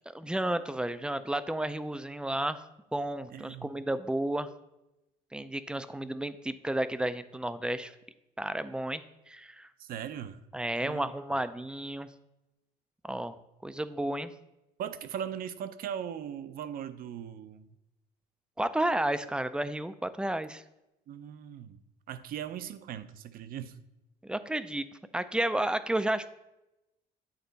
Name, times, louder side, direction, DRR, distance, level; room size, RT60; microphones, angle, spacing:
voice 1, 0.1-2.6 2.9-4.5 5.3-7.9 8.4-9.0 9.3-9.7 10.5-12.1 13.0-13.4 13.6-14.3 18.6-20.6 24.2-24.9 25.1-26.3, right 1 dB, 5° right, 13 dB, 0.3 m, -32 dB
voice 2, 3.3-3.7 9.8-10.4 10.8-11.1 14.8-17.7 21.1-21.8 22.1-23.8, right 9 dB, 60° right, 12 dB, 0.5 m, -39 dB
8.8 x 4.1 x 4.0 m, 0.92 s
cardioid pair, 110°, 17 cm